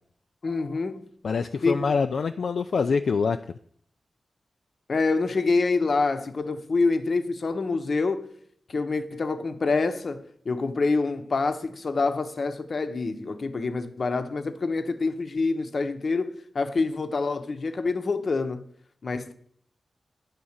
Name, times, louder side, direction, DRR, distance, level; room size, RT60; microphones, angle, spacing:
voice 1, 0.4-1.1 1.6-1.8 4.9-8.3 8.7-18.7 19.0-19.3, left 3 dB, 55° left, 0.8 m, -26 dB
voice 2, 1.2-3.4, left 5 dB, 75° left, 0.3 m, -25 dB
9.4 x 3.7 x 7.2 m
wide cardioid pair, 90°, 0 cm